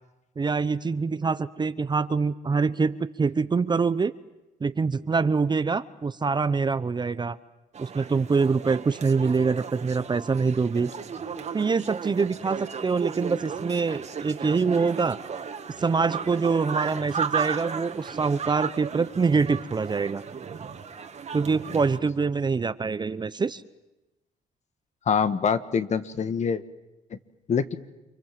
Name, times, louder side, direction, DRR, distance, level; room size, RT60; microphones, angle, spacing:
voice 1, 0.4-4.1 4.6-7.4 7.8-10.9 11.5-15.2 15.8-20.2 21.3-23.6, right 4 dB, 30° right, 14 dB, 0.9 m, -25 dB
sound 1, 7.7-22.0, right 6 dB, 45° right, 2.3 m, -35 dB
voice 2, 25.0-26.6 27.1-27.2 27.5-27.8, left 6 dB, 45° left, 11 dB, 1.6 m, -25 dB
29.5 x 25.0 x 7.5 m, 0.99 s
cardioid pair, 80°, 16 cm